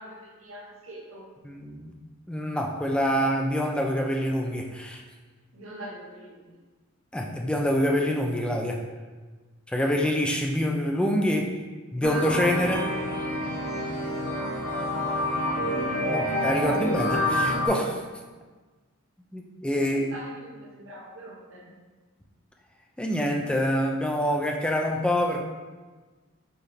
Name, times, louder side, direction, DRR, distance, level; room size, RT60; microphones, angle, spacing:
voice 1, 0.0-1.3 2.9-3.1 5.5-6.5 14.8-15.0 15.3-15.7 19.8-21.7, right 1 dB, 60° right, -2 dB, 0.8 m, -44 dB
voice 2, 1.4-2.0 2.3-5.0 7.1-8.8 9.7-11.5 11.9-12.9 15.6-15.7 16.1-18.1 19.3-20.2 23.0-25.4, equal, 5° left, 1 dB, 0.3 m, -26 dB
sound 1, 12.0-17.7, left 1 dB, 60° left, 0.8 m, -27 dB
4.5 x 3.1 x 3.3 m, 1.3 s
head